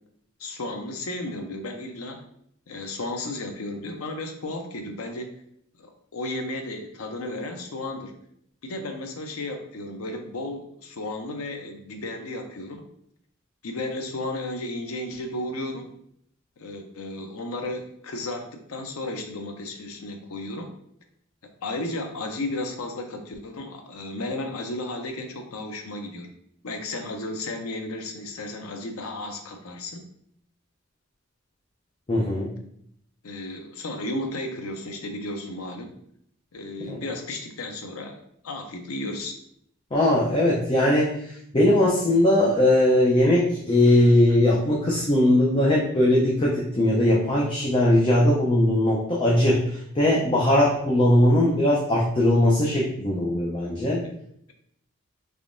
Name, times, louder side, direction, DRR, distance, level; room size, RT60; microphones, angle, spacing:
voice 1, 0.4-2.2 2.7-5.3 5.8-8.2 8.6-12.8 13.6-15.9 16.6-20.7 21.6-26.3 26.6-30.0 33.2-35.9 36.5-38.2 38.4-39.3 54.0-54.1, left 2 dB, 75° left, 5 dB, 0.6 m, -34 dB
voice 2, 32.1-32.5 36.8-37.0 39.9-54.0, left 1 dB, 25° left, -4 dB, 0.6 m, -20 dB
3.5 x 3.4 x 2.6 m, 0.70 s
head